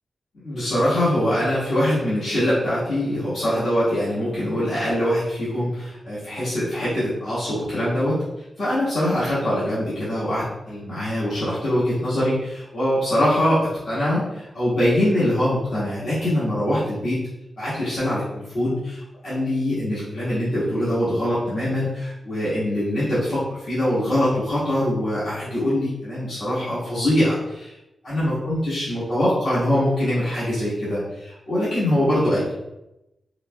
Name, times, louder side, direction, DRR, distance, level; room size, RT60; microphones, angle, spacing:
voice 1, 0.4-8.2 8.6-17.2 17.6-27.8 28.0-32.5, left 1 dB, 75° left, -11 dB, 1.5 m, -23 dB
4.7 x 2.2 x 2.2 m, 0.92 s
cardioid pair, 60°, 0 cm